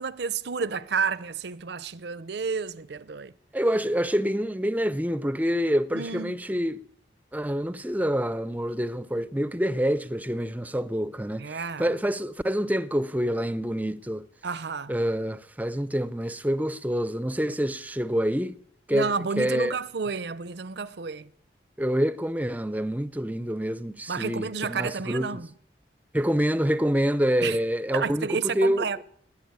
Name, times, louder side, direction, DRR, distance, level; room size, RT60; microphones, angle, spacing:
voice 1, 0.0-3.3 5.9-6.4 11.4-11.9 14.4-14.9 18.9-21.3 24.1-25.5 27.4-27.6 27.9-29.0, right 5 dB, 60° right, 0.6 m, -30 dB
voice 2, 3.5-6.8 7.3-14.3 14.9-18.6 18.9-19.8 21.8-25.4 26.1-29.0, equal, 10° right, 0.5 m, -27 dB
19.5 x 7.1 x 9.5 m
head